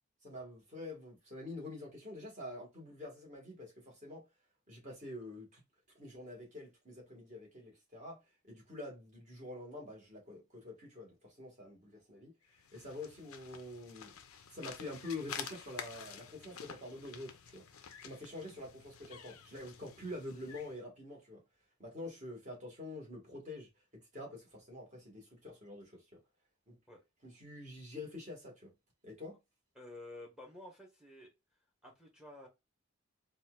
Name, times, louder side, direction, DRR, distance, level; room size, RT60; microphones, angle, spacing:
voice 1, 0.2-4.3 4.7-5.6 6.0-12.3 12.7-14.1 14.5-17.7 18.0-21.4 21.8-26.2 26.7-26.8 27.2-28.7 29.0-29.4, left 2 dB, 35° right, 1.7 m, -47 dB
sound 1, 12.5-20.8, left 7 dB, 80° left, 0.6 m, -50 dB
voice 2, 29.8-31.3 31.8-32.5, left 2 dB, 5° right, 1.0 m, -51 dB
4.1 x 2.4 x 2.3 m
head